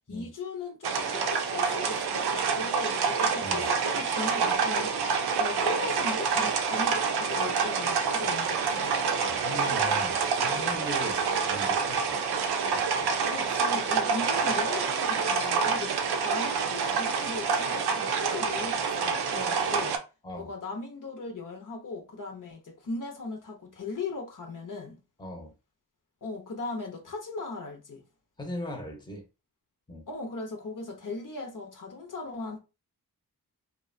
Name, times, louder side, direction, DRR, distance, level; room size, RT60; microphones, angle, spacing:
voice 1, 0.1-5.0 5.4-8.9 13.3-16.0 16.2-20.0 20.4-25.0 26.2-28.0 30.1-32.6, left 3 dB, 55° left, 0.7 m, -38 dB
sound 1, 0.8-20.0, right 5 dB, 85° right, 0.5 m, -27 dB
voice 2, 9.3-12.2 12.9-13.1 20.2-20.5 25.2-25.5 28.4-29.2 29.9-30.1, left 1 dB, 10° left, 0.8 m, -39 dB
2.7 x 2.2 x 2.5 m
cardioid pair, 55°, 38 cm